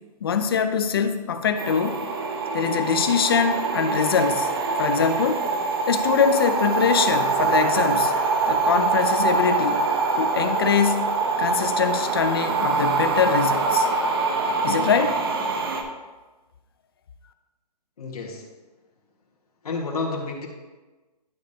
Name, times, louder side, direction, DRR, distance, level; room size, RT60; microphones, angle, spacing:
voice 1, 0.2-2.0 2.5-4.5 4.8-5.5 5.9-8.1 8.5-9.9 10.2-11.1 11.4-13.9 14.6-15.2, left 6 dB, 35° left, 9 dB, 0.5 m, -23 dB
sound 1, 1.6-15.8, right 4 dB, 35° right, 0.7 m, -24 dB
voice 2, 18.0-18.5 19.6-20.5, left 3 dB, 65° left, 0 dB, 1.7 m, -30 dB
11.5 x 5.1 x 2.8 m, 1.2 s
hypercardioid pair, 170°, 21 cm